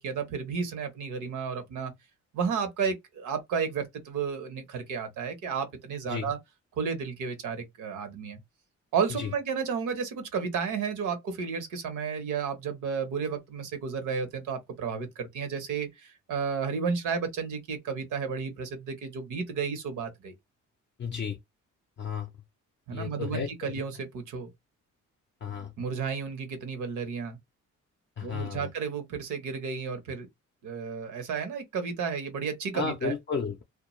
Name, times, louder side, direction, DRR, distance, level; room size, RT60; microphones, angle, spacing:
voice 1, 0.0-1.9 2.3-6.4 6.8-8.4 8.9-20.3 22.9-24.5 25.8-27.4 28.2-30.3 30.6-33.1, right 6 dB, 80° right, 0.9 m, -32 dB
voice 2, 21.0-21.4 22.0-22.3 22.9-23.7 25.4-25.7 28.2-28.7 32.7-33.6, left 6 dB, 40° left, 0.5 m, -33 dB
2.2 x 2.2 x 3.0 m
cardioid pair, 90°, 30 cm